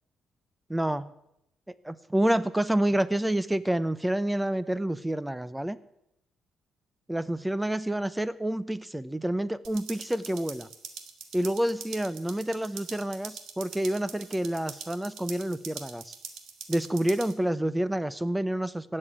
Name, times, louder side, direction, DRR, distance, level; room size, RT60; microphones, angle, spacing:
voice 1, 0.7-1.1 1.8-5.8 7.1-10.7 11.3-16.1 16.7-19.0, right 1 dB, 10° right, 15 dB, 0.9 m, -28 dB
sound 1, 9.6-17.3, right 6 dB, 70° right, 1.9 m, -44 dB
17.0 x 7.8 x 8.5 m, 0.81 s
cardioid pair, 90°, 0 cm